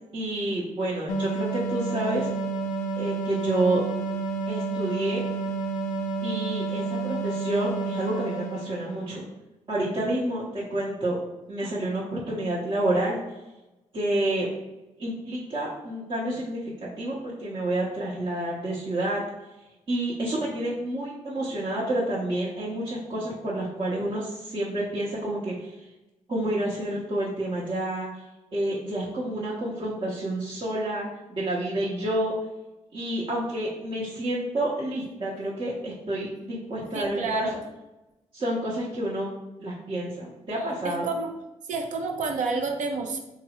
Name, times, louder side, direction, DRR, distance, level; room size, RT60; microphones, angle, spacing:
voice 1, 0.1-2.3 3.0-3.8 4.5-5.2 6.2-9.2 9.7-11.2 11.5-13.2 13.9-14.5 15.0-19.2 19.9-25.8 26.3-28.2 28.5-32.4 32.9-37.5 38.3-39.3 39.6-41.1, right 1 dB, 40° right, -7 dB, 0.9 m, -29 dB
sound 1, 1.1-9.2, right 4 dB, 90° left, 0.4 m, -30 dB
voice 2, 36.9-37.6 40.8-41.3 41.7-43.2, right 4 dB, 75° right, 4 dB, 0.6 m, -29 dB
3.5 x 2.0 x 4.2 m, 1.0 s
cardioid pair, 90°, 13 cm